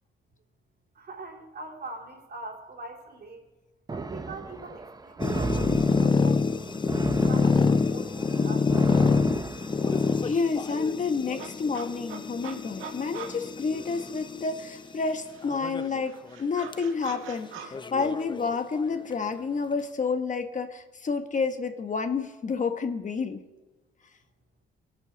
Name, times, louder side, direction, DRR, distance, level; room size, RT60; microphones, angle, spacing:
voice 1, 0.9-3.5 3.9-7.0 7.3-9.0, right 2 dB, 55° right, 1 dB, 3.3 m, -43 dB
sound 1, 3.9-10.3, right 3 dB, 20° right, 0.8 m, -36 dB
sound 2, 5.2-14.7 15.4-16.0 16.3-16.4 16.7-16.8 17.7-18.9, left 4 dB, 25° left, 0.6 m, -26 dB
sound 3, 9.5-9.6 9.9-14.5 14.8-17.7, right 7 dB, 90° right, 1.7 m, -45 dB
voice 2, 10.2-23.4, left 4 dB, 40° left, 7 dB, 1.3 m, -29 dB
21.0 x 8.3 x 6.1 m, 1.1 s
cardioid pair, 90°, 20 cm